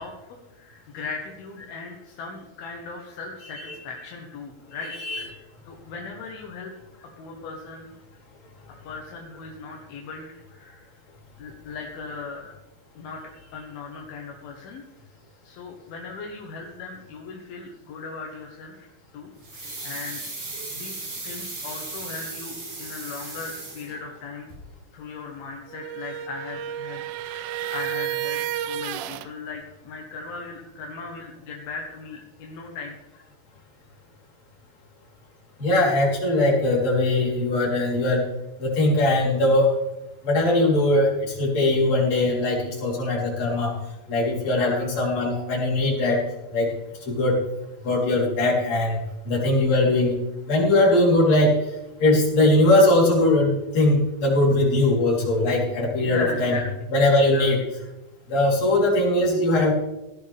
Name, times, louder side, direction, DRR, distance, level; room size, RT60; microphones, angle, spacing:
voice 1, 0.0-4.9 5.3-6.7 7.0-7.9 8.8-10.9 11.4-12.5 13.0-13.2 13.5-14.8 15.4-18.9 19.1-20.2 20.7-24.5 24.9-33.0 44.6-44.8 56.0-56.6 57.3-57.5, left 4 dB, 75° left, 0 dB, 3.1 m, -38 dB
sound 1, 19.4-24.2 24.5-24.6, right 2 dB, 60° right, 6.9 m, -36 dB
sound 2, 25.7-29.3, right 11 dB, 80° right, 2.3 m, -31 dB
voice 2, 35.6-38.3 38.6-39.8 40.2-43.7 44.1-46.2 46.5-46.7 47.0-47.4 47.8-50.2 50.5-51.5 52.0-56.6 56.9-57.6 58.3-59.7, left 1 dB, 45° left, -4 dB, 4.7 m, -20 dB
17.5 x 12.5 x 3.5 m, 1.0 s
omnidirectional pair, 4.5 m